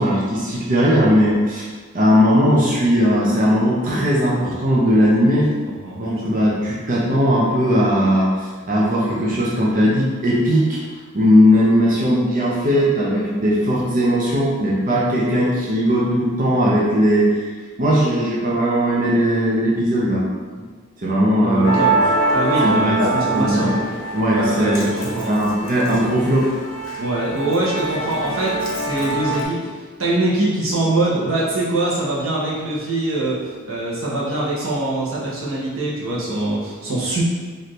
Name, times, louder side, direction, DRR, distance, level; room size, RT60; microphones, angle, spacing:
voice 1, 0.0-1.7 1.9-5.5 6.0-10.8 11.1-17.5 17.8-20.3 21.0-21.7 22.6-23.0 23.4-23.7 24.1-26.6, equal, 40° right, -6 dB, 0.7 m, -18 dB
voice 2, 5.7-6.0 6.6-6.7 21.4-23.7 24.3-25.3 27.0-33.4 33.7-37.2, right 2 dB, 90° right, -5 dB, 1.1 m, -23 dB
Musical instrument, 21.6-29.4, right 2 dB, 85° left, 0.8 m, -24 dB
4.2 x 2.7 x 3.2 m, 1.5 s
head